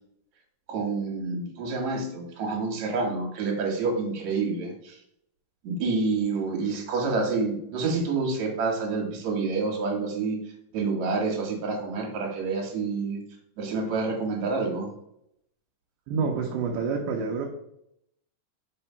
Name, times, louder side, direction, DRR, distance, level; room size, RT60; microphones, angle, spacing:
voice 1, 0.7-5.0 5.6-10.4 10.7-13.2 13.6-14.9, right 4 dB, 55° right, 1 dB, 2.7 m, -28 dB
voice 2, 16.1-17.5, right 5 dB, 75° right, 1 dB, 2.3 m, -28 dB
5.5 x 5.0 x 5.6 m, 0.75 s
omnidirectional pair, 4.0 m